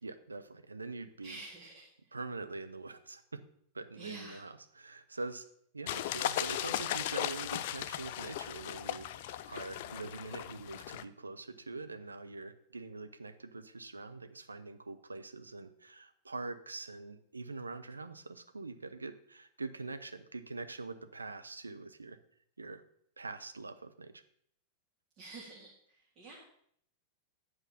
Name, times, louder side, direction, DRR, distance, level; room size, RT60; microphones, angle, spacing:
voice 1, 0.0-1.4 2.1-3.4 3.7-5.5 5.7-22.2 22.6-22.8 23.2-24.2, right 3 dB, 85° right, 9 dB, 0.6 m, -44 dB
voice 2, 1.2-1.9 4.0-4.4 25.2-26.4, right 3 dB, 45° right, -3 dB, 2.0 m, -48 dB
sound 1, 5.9-11.0, left 12 dB, 55° left, 0.4 m, -37 dB
8.6 x 4.8 x 5.7 m, 0.67 s
figure-of-eight pair, 95°, 0 cm